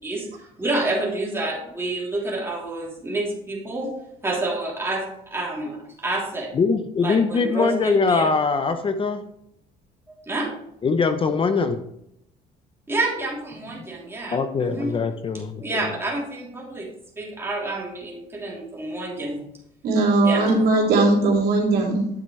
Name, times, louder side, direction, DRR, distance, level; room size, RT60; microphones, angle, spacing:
voice 1, 0.0-3.9 4.2-6.5 7.0-8.3 10.3-10.5 12.9-15.0 15.6-16.9 17.2-19.4 20.2-20.6, right 2 dB, 15° right, -3 dB, 3.2 m, -28 dB
voice 2, 6.5-9.2 10.8-11.8 14.3-15.9, left 4 dB, 30° left, 9 dB, 0.7 m, -22 dB
voice 3, 19.8-22.1, right 2 dB, 65° right, -2 dB, 3.2 m, -19 dB
9.9 x 7.2 x 3.2 m, 0.75 s
cardioid pair, 110°, 17 cm